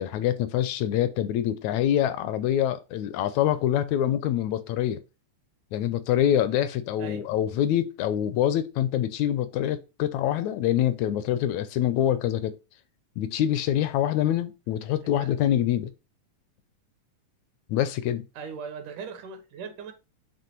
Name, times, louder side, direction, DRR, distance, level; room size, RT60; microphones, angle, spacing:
voice 1, 0.0-5.0 5.7-12.5 13.2-15.9 17.7-18.2, left 11 dB, 80° left, 1.7 m, -25 dB
voice 2, 7.0-7.3 15.0-15.3 18.4-19.9, right 5 dB, 80° right, 2.7 m, -39 dB
7.7 x 3.1 x 4.4 m
omnidirectional pair, 3.6 m